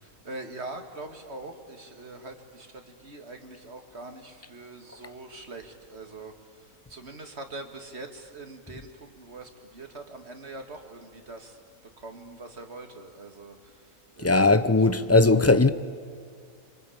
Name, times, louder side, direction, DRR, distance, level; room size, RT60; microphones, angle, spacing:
voice 1, 0.0-6.3 6.6-11.6 12.0-14.6, right 2 dB, 50° right, 2.4 m, -43 dB
voice 2, 14.2-15.7, left 3 dB, 20° left, 0.3 m, -19 dB
27.5 x 25.0 x 8.7 m
omnidirectional pair, 1.5 m